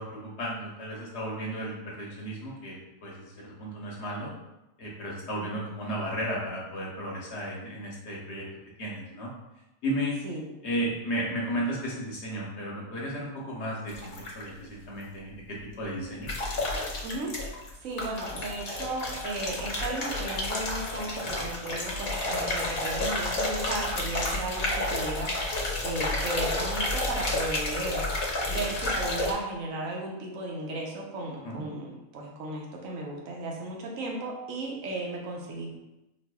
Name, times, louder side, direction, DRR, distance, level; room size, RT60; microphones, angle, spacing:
voice 1, 0.0-4.3 4.8-8.4 8.8-9.3 9.8-10.2 10.6-16.3 31.4-31.6, equal, 60° left, -4 dB, 1.0 m, -34 dB
sound 1, 13.9-14.5 16.3-17.7 18.0-29.3, left 2 dB, 80° left, 1.1 m, -31 dB
voice 2, 17.0-17.5 17.8-28.0 28.5-35.7, right 2 dB, 75° right, -2 dB, 1.1 m, -35 dB
4.1 x 2.7 x 2.2 m, 0.92 s
omnidirectional pair, 1.4 m